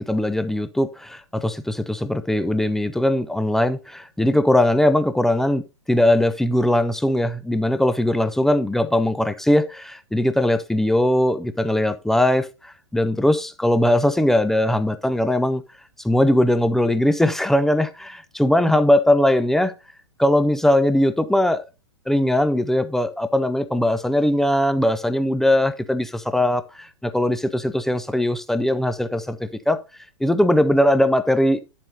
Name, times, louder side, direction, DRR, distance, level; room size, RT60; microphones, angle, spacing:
voice 1, 0.0-15.6 16.0-19.7 20.2-21.6 22.1-29.8 30.2-31.6, left 1 dB, ahead, 0.4 m, -20 dB
10.0 x 7.4 x 2.7 m
figure-of-eight pair, 105°, 16 cm